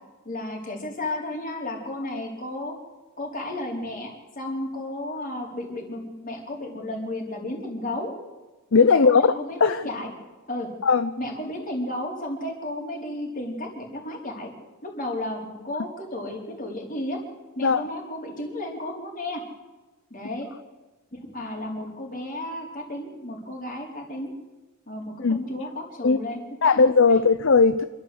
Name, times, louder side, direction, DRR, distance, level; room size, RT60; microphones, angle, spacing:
voice 1, 0.2-2.7 3.2-4.1 4.4-8.1 8.9-10.1 10.5-10.7 11.2-14.5 14.8-17.2 17.6-19.4 20.1-20.5 21.1-24.3 24.9-26.8, left 1 dB, 40° left, 1 dB, 4.4 m, -33 dB
voice 2, 8.7-9.3 9.6-9.8 10.8-11.1 17.6-17.8 25.2-25.4 26.0-26.2 26.6-27.8, left 4 dB, 60° left, 12 dB, 0.6 m, -18 dB
27.0 x 13.0 x 8.1 m, 1.2 s
head